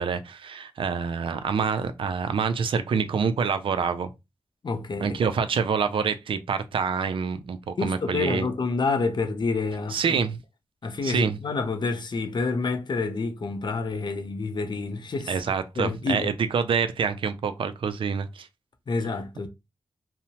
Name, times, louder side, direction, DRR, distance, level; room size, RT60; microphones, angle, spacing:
voice 1, 0.0-4.1 5.0-8.5 9.9-10.4 11.0-11.4 15.3-18.5, right 6 dB, 80° right, 0.4 m, -26 dB
voice 2, 4.6-5.2 7.8-10.2 10.8-15.4 15.8-16.3 18.9-19.5, left 4 dB, 60° left, 0.6 m, -28 dB
2.7 x 2.0 x 2.8 m
cardioid pair, 60°, 9 cm